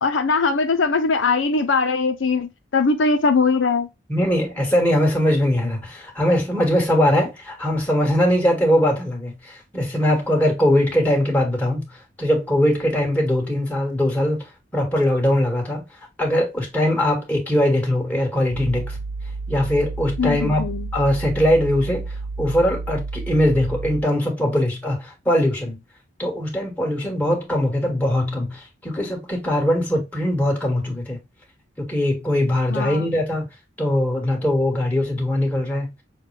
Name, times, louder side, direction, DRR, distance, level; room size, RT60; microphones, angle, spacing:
voice 1, 0.0-3.9 20.2-20.9 32.7-33.2, left 4 dB, 70° left, 0.5 m, -21 dB
voice 2, 4.1-11.9 12.2-14.4 14.7-15.8 16.2-19.0 19.5-20.6 20.9-25.8 26.2-31.2 31.8-33.5 33.8-35.9, left 1 dB, 10° left, 1.6 m, -21 dB
sound 1, 18.5-24.0, right 3 dB, 80° right, 0.6 m, -31 dB
6.4 x 2.2 x 3.3 m
head